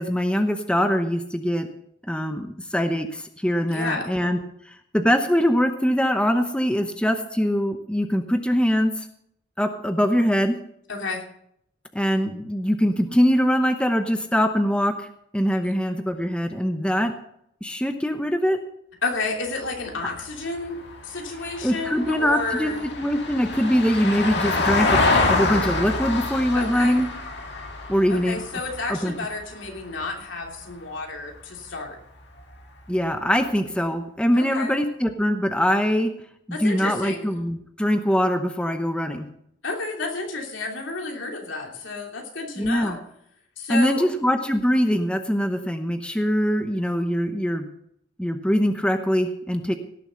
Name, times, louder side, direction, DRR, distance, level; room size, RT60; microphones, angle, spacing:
voice 1, 0.0-1.7 2.1-4.4 4.7-9.1 9.6-10.6 11.9-15.1 15.3-17.1 17.6-18.6 21.6-27.1 27.9-28.4 28.9-29.1 32.9-36.1 36.5-39.3 42.6-43.0 43.7-47.7 48.2-49.8, equal, 5° left, 6 dB, 0.8 m, -23 dB
voice 2, 3.7-4.1 10.9-11.2 19.0-22.8 26.5-27.0 28.1-32.0 34.3-34.7 36.5-37.3 39.6-43.0 43.6-44.1, left 3 dB, 85° left, 1 dB, 3.0 m, -31 dB
Vehicle, 19.6-30.1 32.4-32.5, left 3 dB, 60° left, 2.1 m, -27 dB
17.5 x 7.1 x 6.3 m, 0.72 s
head